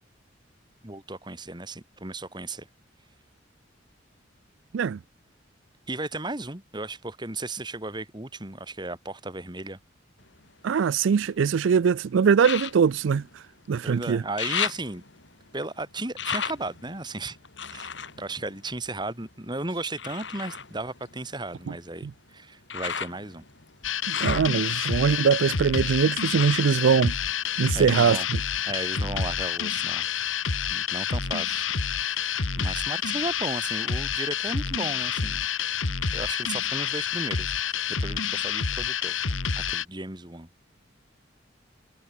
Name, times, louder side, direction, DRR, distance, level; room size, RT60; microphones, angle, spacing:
voice 1, 0.8-2.7 5.9-9.8 13.8-15.0 15.5-17.4 17.7-23.5 27.7-28.3 28.7-30.4 30.7-31.7 32.0-35.4 36.1-39.1 39.6-40.5, right 2 dB, 20° right, 2.5 m, -35 dB
sound 1, 10.2-11.6 12.4-13.9 14.1-19.3 20.0-27.8 28.1-28.9 29.4-29.5, left 7 dB, 65° left, 3.5 m, -36 dB
voice 2, 10.6-13.4 13.7-14.2 22.0-22.1 24.1-27.1 27.6-28.2, right 6 dB, 75° right, 0.4 m, -22 dB
sound 2, 23.8-39.8, left 7 dB, 85° left, 1.5 m, -28 dB
head